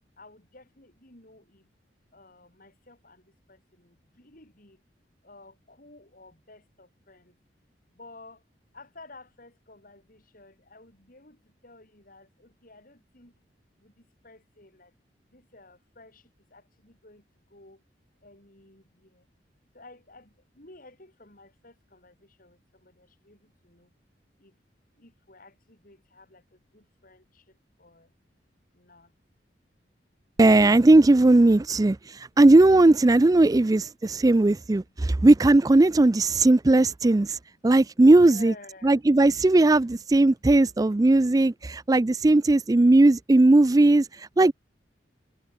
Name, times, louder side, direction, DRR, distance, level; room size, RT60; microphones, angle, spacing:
voice 1, 0.2-1.7 2.1-4.8 5.2-7.4 7.9-8.4 8.7-13.4 13.8-14.9 15.3-17.8 18.2-19.3 19.7-23.9 24.4-24.6 25.0-28.1 28.7-29.1 38.1-39.0 40.4-40.5, left 2 dB, 50° left, 6.6 m, -53 dB
voice 2, 30.4-37.4 37.6-38.5 38.8-44.5, right 2 dB, 20° right, 0.4 m, -18 dB
head